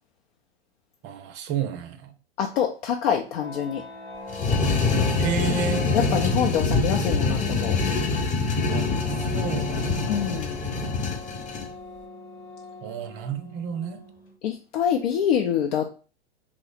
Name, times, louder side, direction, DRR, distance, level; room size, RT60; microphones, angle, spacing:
voice 1, 1.0-2.1 5.2-5.9 8.7-10.3 12.8-14.0, right 7 dB, 35° right, 0.5 m, -32 dB
voice 2, 2.4-3.8 5.9-7.8 10.1-10.6 14.4-15.9, left 8 dB, 65° left, 0.6 m, -25 dB
sound 1, 3.2-14.3, left 3 dB, 90° left, 1.3 m, -39 dB
sound 2, 4.3-11.7, left 3 dB, 25° left, 0.8 m, -25 dB
2.9 x 2.0 x 4.1 m
hypercardioid pair, 105°, 32 cm